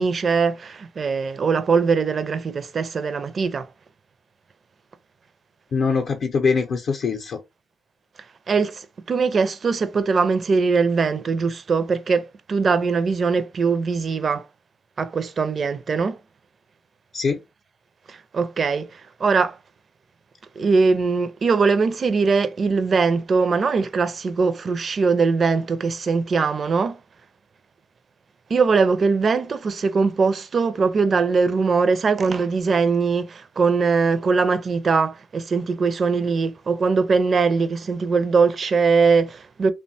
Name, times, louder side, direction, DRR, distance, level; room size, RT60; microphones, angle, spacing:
voice 1, 0.0-3.7 8.5-14.5 15.0-16.2 18.1-19.6 20.6-27.0 28.5-39.7, right 4 dB, 45° right, 0.4 m, -21 dB
voice 2, 5.7-7.4 17.1-17.4, left 5 dB, 60° left, 0.5 m, -22 dB
2.9 x 2.1 x 2.6 m
cardioid pair, 90°, 0 cm